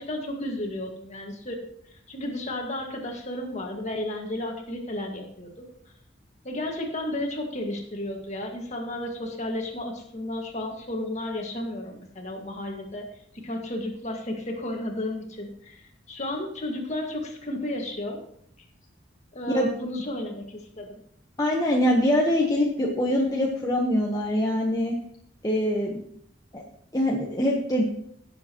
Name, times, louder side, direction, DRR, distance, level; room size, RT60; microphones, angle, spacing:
voice 1, 0.0-5.6 6.4-13.1 13.3-18.2 19.3-21.0, left 1 dB, 40° left, 2 dB, 1.9 m, -33 dB
voice 2, 21.4-24.9 25.4-26.0 26.5-26.6 26.9-27.8, left 1 dB, 20° left, -2 dB, 1.1 m, -23 dB
17.0 x 7.4 x 3.0 m, 0.69 s
head